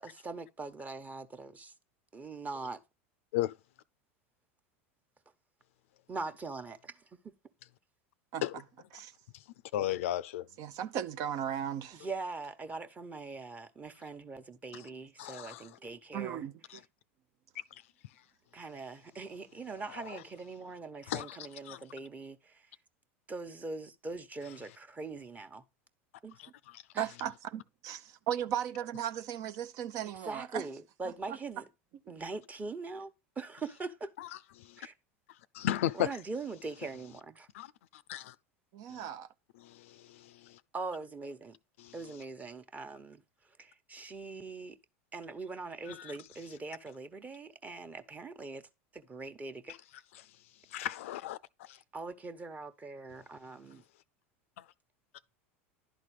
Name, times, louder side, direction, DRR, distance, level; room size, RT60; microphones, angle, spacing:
voice 1, 0.0-1.7 2.1-2.8 6.1-7.3 11.9-16.5 18.5-22.7 23.3-25.6 26.2-26.4 26.9-27.1 30.0-31.6 32.1-34.1 34.8-34.9 35.9-37.5 40.7-41.6 41.9-44.8 45.1-49.8 51.7-53.8, right 3 dB, 20° right, 1.1 m, -42 dB
voice 2, 9.7-10.5 15.2-15.6 21.1-21.4 21.7-21.8 34.6-34.8 35.5-36.1 37.5-37.7 37.9-38.3 38.9-39.0 39.6-40.0 41.8-41.9 46.0-46.1 50.7-51.4 51.7-51.8, left 13 dB, 80° left, 0.5 m, -34 dB
voice 3, 10.6-12.0 16.1-16.5 27.0-27.3 27.8-30.6 31.3-31.4 38.7-39.3, right 10 dB, 55° right, 0.7 m, -36 dB
11.0 x 4.1 x 4.8 m
hypercardioid pair, 100°, 7 cm